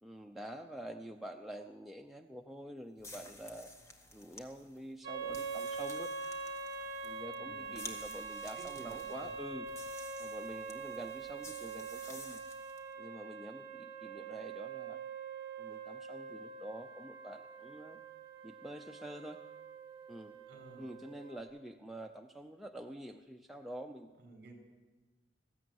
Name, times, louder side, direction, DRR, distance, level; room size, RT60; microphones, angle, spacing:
voice 1, 0.0-3.7 4.1-6.1 7.0-9.7 10.2-12.4 13.0-15.0 15.6-18.0 18.4-19.4 20.1-20.4 20.8-24.1, right 1 dB, ahead, 2 dB, 0.7 m, -47 dB
sound 1, 3.0-12.9, left 1 dB, 15° left, 1.6 m, -53 dB
sound 2, 5.0-21.4, right 5 dB, 25° right, 2.8 m, -44 dB
voice 2, 7.3-7.7 8.5-9.3 20.5-20.8 24.2-24.5, right 1 dB, 50° right, 3 dB, 5.6 m, -54 dB
20.0 x 15.5 x 9.4 m, 1.2 s
head